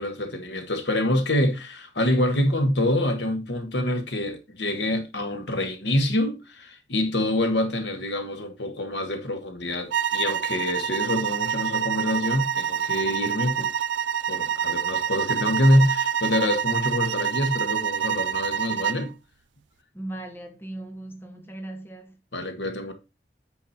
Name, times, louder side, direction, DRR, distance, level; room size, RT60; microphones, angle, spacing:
voice 1, 0.0-13.7 14.3-19.1 22.3-22.9, left 1 dB, 75° left, 1.7 m, -26 dB
sound 1, 9.9-19.1, right 8 dB, 85° right, 0.5 m, -27 dB
voice 2, 19.9-22.2, right 1 dB, 10° left, 1.0 m, -38 dB
8.6 x 5.2 x 4.2 m
head